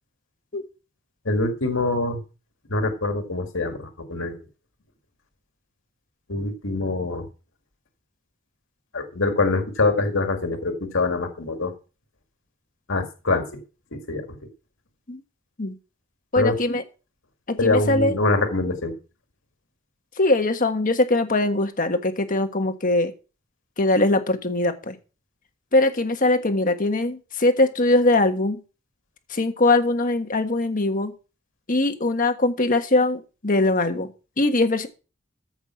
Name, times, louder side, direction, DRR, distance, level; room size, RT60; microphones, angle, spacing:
voice 1, 1.3-2.2 2.7-4.4 6.3-7.3 8.9-11.7 12.9-13.6 13.9-14.3 16.4-16.8 17.6-18.9, left 2 dB, 70° left, 5 dB, 2.0 m, -24 dB
voice 2, 16.3-16.8 17.5-18.1 20.2-23.1 23.8-25.0 25.7-28.6 29.3-31.1 31.7-34.1 34.4-34.9, left 2 dB, 40° left, 7 dB, 1.4 m, -21 dB
14.5 x 5.9 x 5.8 m, 0.34 s
head